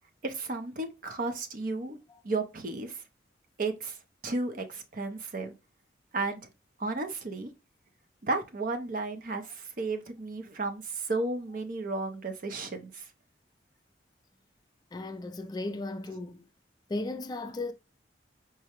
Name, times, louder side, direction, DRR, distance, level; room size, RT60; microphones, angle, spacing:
voice 1, 0.2-2.0 2.2-3.0 3.6-4.0 4.2-5.5 6.1-6.5 6.8-7.5 8.2-13.1, right 3 dB, 50° right, 0.6 m, -33 dB
voice 2, 14.9-16.5 16.9-17.7, left 2 dB, 25° left, 0.3 m, -35 dB
4.7 x 2.2 x 2.8 m
head